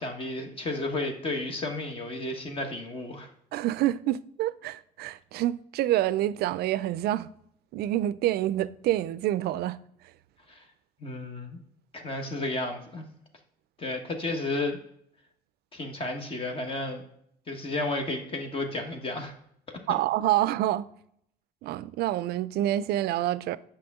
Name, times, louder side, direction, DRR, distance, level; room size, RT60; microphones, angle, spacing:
voice 1, 0.0-3.3 10.5-10.6 11.0-11.6 11.9-13.0 13.8-14.8 15.7-17.0 17.5-19.3, left 2 dB, 35° left, 1.2 m, -32 dB
voice 2, 3.5-7.3 7.7-9.8 19.9-20.9 21.6-23.6, right 13 dB, 70° right, 0.4 m, -27 dB
7.8 x 5.7 x 3.6 m
cardioid pair, 110°, 17 cm